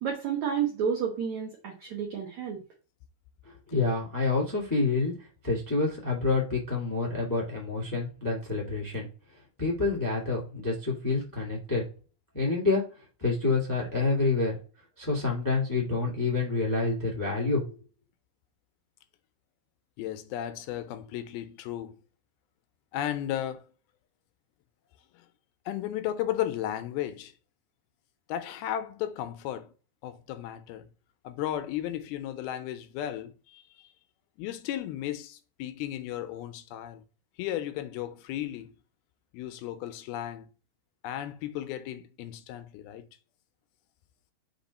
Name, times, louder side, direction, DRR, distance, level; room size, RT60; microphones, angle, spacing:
voice 1, 0.0-2.6, right 7 dB, 65° right, 2.0 m, -30 dB
voice 2, 3.7-5.1 5.4-9.1 9.6-11.8 12.3-12.8 13.2-14.6 15.0-17.6, left 3 dB, 30° left, 0.3 m, -27 dB
voice 3, 20.0-22.0 22.9-23.6 25.1-25.3 25.7-27.3 28.3-29.7 30.0-30.9 31.2-33.9 34.4-37.0 37.4-38.8 39.3-40.5 41.0-43.0, left 12 dB, 80° left, 2.4 m, -34 dB
6.0 x 4.1 x 4.1 m
omnidirectional pair, 4.5 m